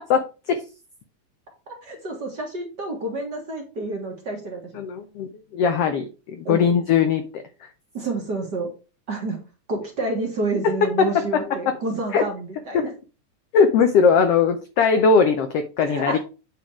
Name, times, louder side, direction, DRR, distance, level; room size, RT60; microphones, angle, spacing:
voice 1, 1.7-4.7 6.4-6.7 7.9-8.7 9.1-9.4 9.7-12.9 15.9-16.2, right 2 dB, 40° right, 1.8 m, -29 dB
voice 2, 4.7-5.3 5.5-7.4 10.6-11.6 12.1-12.2 12.7-12.9 13.5-16.2, left 5 dB, 80° left, 1.3 m, -20 dB
8.7 x 4.0 x 4.8 m
omnidirectional pair, 3.6 m